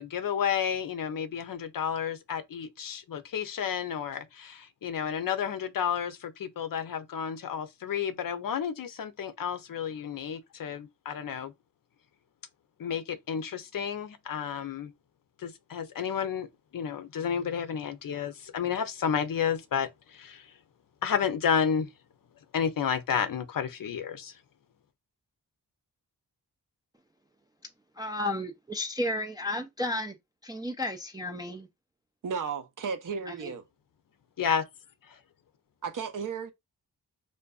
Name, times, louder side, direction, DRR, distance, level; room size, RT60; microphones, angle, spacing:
voice 1, 0.0-11.5 12.8-14.9 15.4-16.5 16.7-20.5 21.0-21.9 22.5-24.3 34.4-34.6, left 7 dB, 55° left, 0.6 m, -31 dB
voice 2, 28.0-30.2 30.4-31.7 33.3-33.5, left 1 dB, 10° right, 0.3 m, -33 dB
voice 3, 32.2-33.6 35.8-36.5, right 6 dB, 50° right, 0.6 m, -34 dB
2.6 x 2.2 x 2.3 m
cardioid pair, 45°, 41 cm